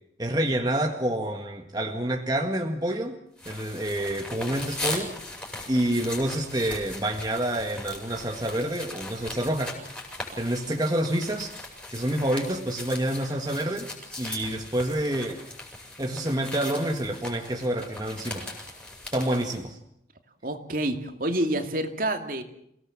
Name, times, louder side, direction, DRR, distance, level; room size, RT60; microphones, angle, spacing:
voice 1, 0.2-3.2 3.5-5.1 5.7-9.8 10.4-11.5 11.9-13.9 14.2-15.4 16.0-18.5 19.1-19.8, right 1 dB, 20° right, 3 dB, 1.8 m, -28 dB
sound 1, 3.4-19.6, left 2 dB, 5° left, 6.2 m, -39 dB
voice 2, 20.4-22.4, right 1 dB, 50° right, 6 dB, 2.6 m, -28 dB
28.5 x 18.0 x 7.5 m, 0.74 s
head